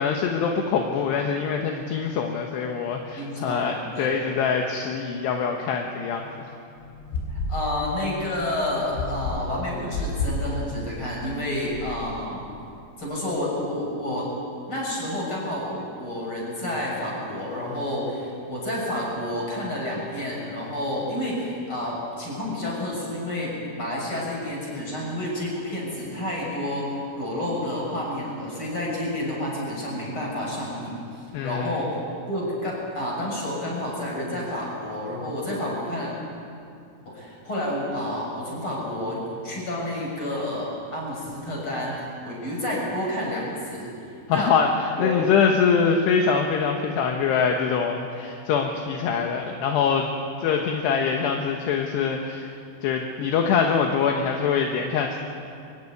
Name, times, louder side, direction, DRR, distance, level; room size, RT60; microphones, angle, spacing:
voice 1, 0.0-6.3 31.3-31.7 44.3-44.7 45.0-50.1 50.4-52.5 52.8-55.2, left 6 dB, 70° left, 2 dB, 2.9 m, -24 dB
voice 2, 3.2-4.2 7.3-12.5 13.0-14.3 14.7-32.0 32.3-36.1 37.1-43.9 44.3-44.6 44.9-45.2, left 1 dB, 25° left, -3 dB, 7.2 m, -30 dB
sound 1, 6.8-12.2, left 2 dB, 90° left, 6.3 m, -32 dB
24.5 x 16.0 x 9.6 m, 2.6 s
omnidirectional pair, 5.9 m